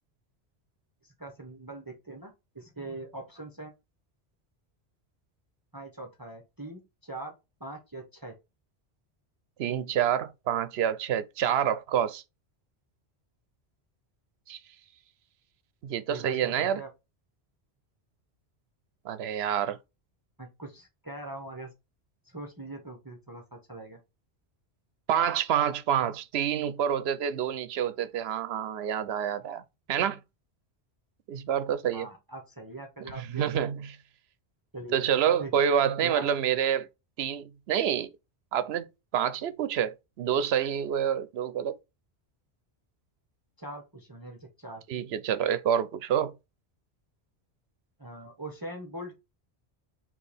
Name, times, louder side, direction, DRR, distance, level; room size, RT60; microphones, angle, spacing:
voice 1, 1.0-3.7 5.7-7.3 7.6-8.3 16.1-16.9 20.4-21.7 22.2-24.0 31.9-33.4 34.7-34.9 35.4-35.5 36.0-36.3 43.6-44.8 48.0-49.2, right 2 dB, 20° right, 0.9 m, -42 dB
voice 2, 9.6-12.2 14.5-14.6 15.8-16.8 19.0-19.8 25.1-29.6 29.9-30.2 31.3-32.1 33.2-34.0 34.9-36.9 37.2-38.1 38.5-38.9 39.1-41.8 44.9-46.3, right 9 dB, 75° right, 0.8 m, -27 dB
4.5 x 2.9 x 3.3 m
omnidirectional pair, 1.1 m